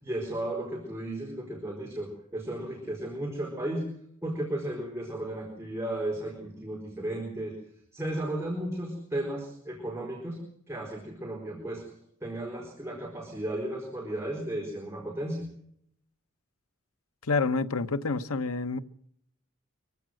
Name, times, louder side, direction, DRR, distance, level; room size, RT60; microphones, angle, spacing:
voice 1, 0.0-3.9 4.2-7.5 7.9-10.4 10.7-11.9 12.2-15.5, right 1 dB, 15° right, 4.4 m, -34 dB
voice 2, 17.2-18.8, left 3 dB, 90° left, 1.1 m, -28 dB
24.5 x 15.5 x 7.8 m
head